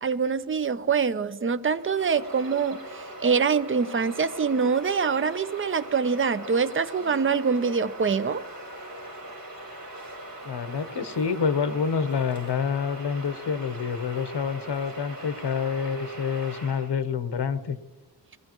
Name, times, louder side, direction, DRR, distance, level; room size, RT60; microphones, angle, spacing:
voice 1, 0.0-8.4, right 5 dB, 30° right, 12 dB, 0.6 m, -25 dB
Bird vocalization bird call bird song, 1.7-16.9, right 1 dB, 50° right, 5.3 m, -41 dB
voice 2, 10.4-17.8, left 6 dB, 70° left, 9 dB, 1.0 m, -27 dB
21.0 x 15.0 x 3.0 m, 1.2 s
wide cardioid pair, 95°, 42 cm